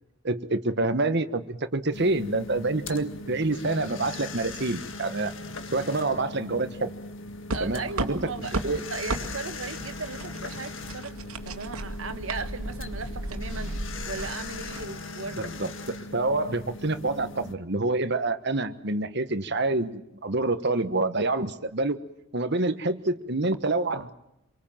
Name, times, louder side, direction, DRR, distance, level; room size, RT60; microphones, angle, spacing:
voice 1, 0.2-5.3 5.7-6.9 7.6-8.2 8.6-8.8 15.4-22.0 22.3-24.1, right 2 dB, 50° right, 9 dB, 1.4 m, -27 dB
sound 1, 1.9-17.5, left 3 dB, 60° left, 1.9 m, -39 dB
voice 2, 7.5-8.6 8.9-13.8 14.1-15.4, right 4 dB, 65° right, 10 dB, 1.4 m, -37 dB
sound 2, 7.5-14.9, right 2 dB, 85° right, 2.3 m, -35 dB
26.5 x 24.0 x 7.5 m, 0.82 s
head